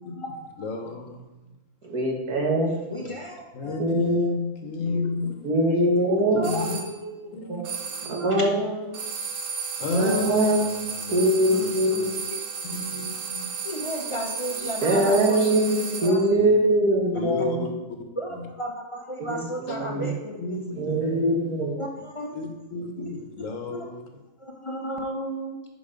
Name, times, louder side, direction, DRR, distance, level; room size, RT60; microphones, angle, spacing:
voice 1, 0.6-1.4 3.0-3.1 3.5-5.3 5.8-6.0 6.3-6.8 7.3-7.6 8.0-8.4 9.8-12.2 12.7-13.5 16.3-16.5 17.1-17.7 18.3-18.4 19.7-19.8 20.4-21.7 22.3-24.0, left 3 dB, 60° left, 4 dB, 1.5 m, -31 dB
voice 2, 1.8-2.7 3.8-4.3 5.4-6.5 7.5-7.6 8.2-8.8 9.8-10.6 11.1-12.1 14.8-17.6 19.2-19.4 19.8-20.1 20.8-21.7, right 1 dB, 90° right, 1 dB, 2.0 m, -22 dB
voice 3, 2.9-3.8 4.9-5.1 6.3-7.1 8.0-8.5 12.3-12.4 13.6-16.2 17.4-17.5 18.2-20.8 21.8-22.3 23.0-23.2 23.7-23.8 24.4-25.6, equal, 25° left, 1 dB, 0.8 m, -33 dB
sound 1, 6.4-6.9 7.6-8.3 8.9-16.3, right 6 dB, 70° right, 1.3 m, -34 dB
10.5 x 4.9 x 5.1 m, 1.1 s
omnidirectional pair, 1.6 m